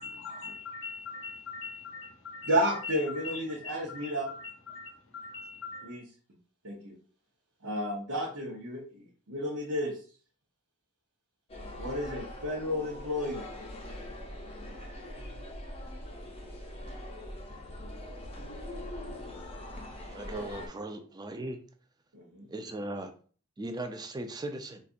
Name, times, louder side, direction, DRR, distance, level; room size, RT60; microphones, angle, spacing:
voice 1, 0.0-2.5 2.8-5.9, left 4 dB, 65° left, 5 dB, 0.7 m, -42 dB
voice 2, 2.4-4.3 5.8-6.0 6.6-6.9 7.6-9.9 11.8-13.4 22.1-22.5, equal, 85° right, -6 dB, 0.9 m, -32 dB
sound 1, 11.5-20.7, left 1 dB, 30° left, 0.6 m, -42 dB
voice 3, 20.1-21.6 22.5-23.1 23.6-24.8, right 2 dB, 20° right, 7 dB, 0.4 m, -38 dB
4.0 x 2.4 x 2.5 m, 0.41 s
head